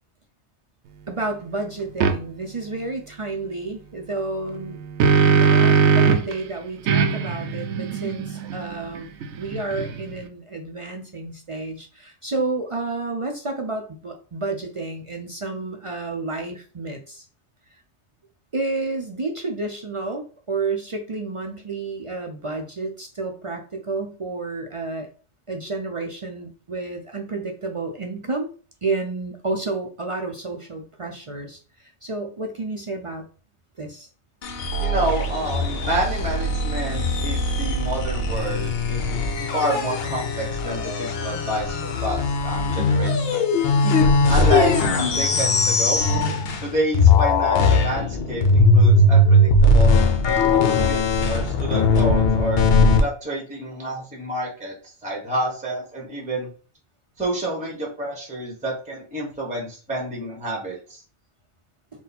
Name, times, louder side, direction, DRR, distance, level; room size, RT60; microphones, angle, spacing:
voice 1, 1.1-4.8 5.2-9.1 9.4-17.2 18.5-25.1 25.5-28.5 28.8-33.3 33.8-34.1 42.8-42.9 43.8-44.1, right 3 dB, 45° right, 3 dB, 0.4 m, -30 dB
sound 1, 2.0-2.2 4.6-6.3 6.9-10.2, right 5 dB, 80° right, 0.9 m, -20 dB
sound 2, 34.4-46.7 46.9-53.0, left 2 dB, 65° left, 0.9 m, -19 dB
voice 2, 34.8-43.1 44.3-46.0 46.6-52.6 53.0-54.7 55.0-56.5 57.2-61.0, right 1 dB, 5° right, -1 dB, 1.0 m, -29 dB
4.1 x 2.3 x 4.0 m, 0.38 s
omnidirectional pair, 1.2 m